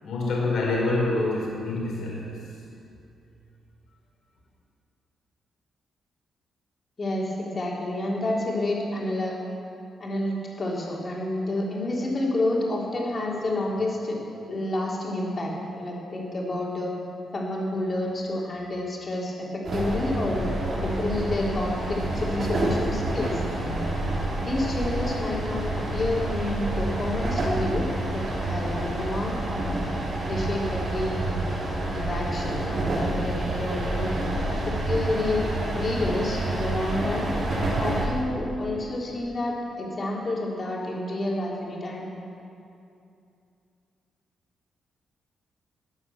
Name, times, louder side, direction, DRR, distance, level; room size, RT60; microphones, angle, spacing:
voice 1, 0.0-2.5, left 2 dB, 70° left, -3 dB, 4.1 m, -26 dB
voice 2, 7.0-9.4 10.0-14.2 14.5-16.9 17.3-20.5 20.8-23.8 24.4-25.6 25.9-29.8 30.2-31.4 31.8-34.1 34.5-35.4 35.7-37.3 37.8-42.1, left 2 dB, 35° left, -3 dB, 3.4 m, -29 dB
sound 1, 19.6-38.1, right 2 dB, 55° right, 3.7 m, -28 dB
14.0 x 9.2 x 7.1 m, 2.6 s
cardioid pair, 100°, 0 cm